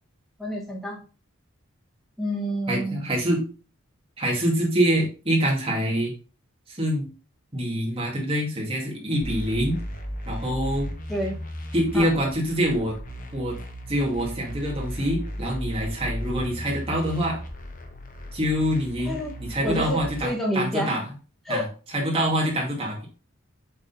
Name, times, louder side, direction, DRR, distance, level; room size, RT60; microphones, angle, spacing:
voice 1, 0.4-1.0 2.2-3.0 11.1-11.4 11.9-12.1 19.1-19.4 19.6-20.9 21.5-21.7, equal, ahead, -3 dB, 1.9 m, -28 dB
voice 2, 2.7-3.4 4.2-6.1 6.7-7.1 7.5-9.8 10.3-10.9 11.7-13.0 13.3-13.6 13.9-17.4 18.3-21.0 21.5-23.1, equal, 25° right, -2 dB, 2.3 m, -25 dB
sound 1, 9.2-20.2, equal, 40° left, 1.1 m, -35 dB
7.1 x 3.9 x 4.0 m, 0.35 s
head